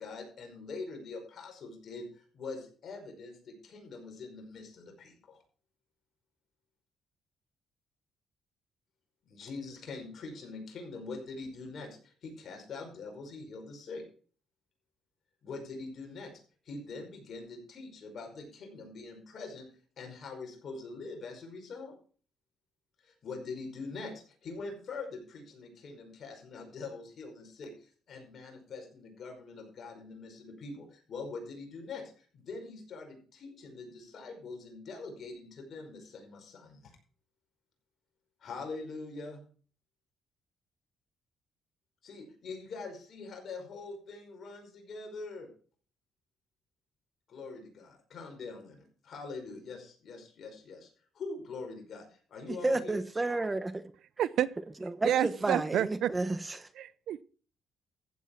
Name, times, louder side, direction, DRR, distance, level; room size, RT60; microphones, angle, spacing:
voice 1, 0.0-5.4 9.2-14.0 15.4-16.3 16.6-19.7 20.0-21.9 23.0-36.9 38.4-39.4 42.0-45.5 47.3-50.9 51.1-53.0, left 3 dB, 60° left, 5.2 m, -43 dB
voice 2, 52.5-53.9 54.8-56.7, right 2 dB, 20° right, 1.0 m, -32 dB
voice 3, 55.0-56.1 56.8-57.2, right 11 dB, 75° right, 0.5 m, -29 dB
14.5 x 8.2 x 4.5 m
cardioid pair, 90°, 0 cm